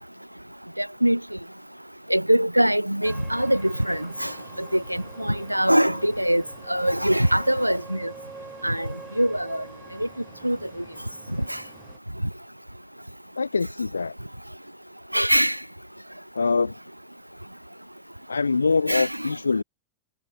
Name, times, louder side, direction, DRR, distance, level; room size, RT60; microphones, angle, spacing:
voice 1, 0.8-1.2 2.1-4.3 4.6-6.4 6.7-8.1 8.6-8.9 9.2-9.6 10.0-10.1 10.4-10.6 15.1-15.6 18.9-19.3, equal, 90° right, 0.3 m, -22 dB
sound 1, 3.0-12.0, right 4 dB, 10° right, 5.1 m, -46 dB
voice 2, 13.4-14.1 16.3-16.7 18.3-19.6, left 4 dB, 75° left, 0.4 m, -24 dB
figure-of-eight pair, 90°, 0 cm